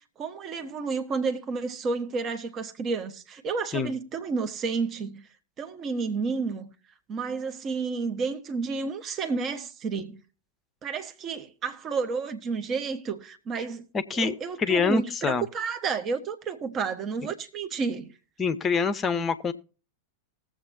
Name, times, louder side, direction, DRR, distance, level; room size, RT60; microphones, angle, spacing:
voice 1, 0.2-5.3 5.6-6.7 7.1-10.2 10.8-13.9 14.1-18.1, right 4 dB, 30° right, 1.0 m, -31 dB
voice 2, 13.9-15.5 18.4-19.5, left 5 dB, 20° left, 0.7 m, -26 dB
19.5 x 7.5 x 2.7 m
figure-of-eight pair, 90°, 0 cm